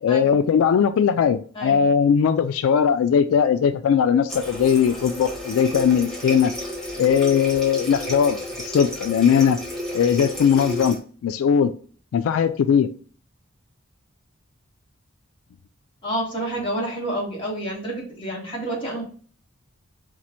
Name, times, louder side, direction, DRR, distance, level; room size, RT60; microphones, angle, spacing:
voice 1, 0.0-6.5 7.0-9.6 9.9-11.0 11.2-11.7 12.1-12.9, left 7 dB, 90° left, 11 dB, 0.3 m, -19 dB
Water tap faucet, 4.3-11.0, equal, 5° left, 0.9 m, -32 dB
voice 2, 16.0-19.0, right 1 dB, 25° left, -4 dB, 1.6 m, -29 dB
4.3 x 2.4 x 4.3 m, 0.44 s
head